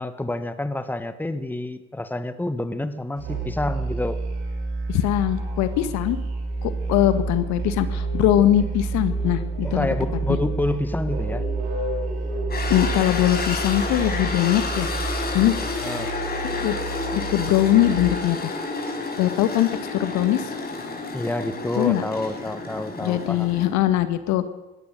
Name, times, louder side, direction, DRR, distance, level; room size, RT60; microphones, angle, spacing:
voice 1, 0.0-4.2 9.6-11.4 15.8-16.1 21.1-23.5, left 2 dB, 5° left, 11 dB, 1.6 m, -28 dB
Musical instrument, 3.2-18.2, right 3 dB, 70° right, 5.5 m, -29 dB
voice 2, 4.9-6.2 6.6-9.9 10.3-10.4 12.7-14.9 15.3-15.5 16.4-16.7 17.1-18.5 19.2-20.5 21.8-22.0 23.0-24.4, left 13 dB, 55° left, 11 dB, 1.7 m, -21 dB
sound 1, 12.5-23.7, left 3 dB, 30° left, 5.4 m, -30 dB
22.5 x 17.5 x 6.7 m, 1.0 s
hypercardioid pair, 70°, 33 cm